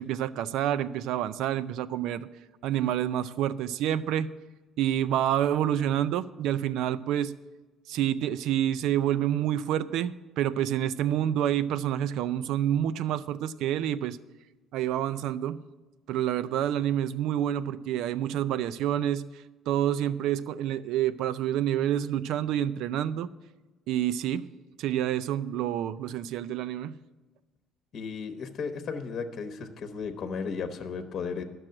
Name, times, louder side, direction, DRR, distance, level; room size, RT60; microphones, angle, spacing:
voice 1, 0.0-2.3 2.6-4.3 4.8-7.3 7.9-14.2 14.7-15.6 16.1-19.2 19.7-23.3 23.9-24.5 24.8-26.9, right 11 dB, 75° right, 16 dB, 0.4 m, -28 dB
voice 2, 27.9-31.4, left 5 dB, 50° left, 7 dB, 1.0 m, -35 dB
12.0 x 6.2 x 7.7 m, 1.2 s
cardioid pair, 120°, 0 cm